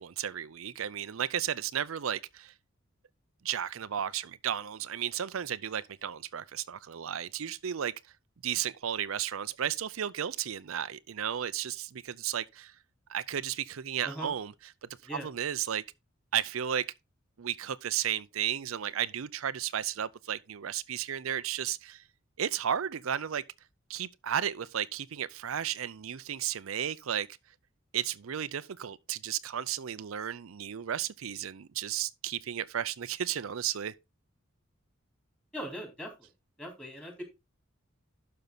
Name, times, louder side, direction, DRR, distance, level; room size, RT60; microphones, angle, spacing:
voice 1, 0.0-2.5 3.4-7.9 8.4-12.7 13.1-14.5 15.2-15.8 16.3-16.9 17.4-22.0 22.4-23.4 23.9-27.3 27.9-33.9, right 9 dB, 85° right, 0.5 m, -33 dB
voice 2, 35.5-36.3 36.6-37.2, equal, 5° left, 3.9 m, -40 dB
12.0 x 5.6 x 3.9 m
head